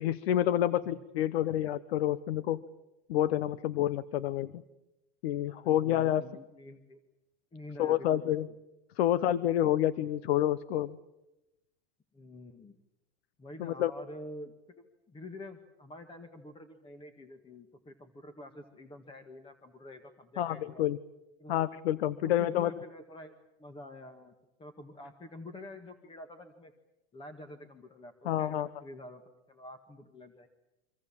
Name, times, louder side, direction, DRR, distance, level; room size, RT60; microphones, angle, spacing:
voice 1, 0.0-2.6 3.1-4.6 5.2-6.2 7.8-8.5 9.0-11.0 13.6-13.9 20.4-21.0 21.5-22.7 28.2-28.7, left 12 dB, 80° left, 16 dB, 1.0 m, -28 dB
voice 2, 5.5-7.0 7.5-8.3 12.1-12.8 13.4-20.8 21.4-21.6 22.2-23.3 23.6-24.3 24.6-26.7 27.1-29.2 29.5-30.5, left 2 dB, 15° left, 7 dB, 1.8 m, -48 dB
26.0 x 25.5 x 7.4 m, 0.95 s
supercardioid pair, 125°, 31 cm